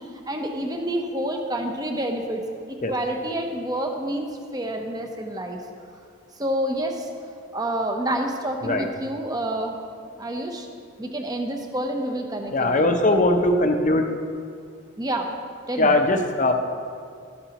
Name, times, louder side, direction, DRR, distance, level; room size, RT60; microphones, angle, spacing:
voice 1, 0.0-4.3 4.5-5.6 6.4-7.1 7.5-9.8 10.2-10.7 11.0-13.2 15.0-15.3 15.7-15.9, right 1 dB, 20° right, 3 dB, 0.8 m, -28 dB
voice 2, 12.5-14.1 15.8-16.5, left 2 dB, 40° left, 5 dB, 0.7 m, -20 dB
12.5 x 12.5 x 3.0 m, 2.2 s
head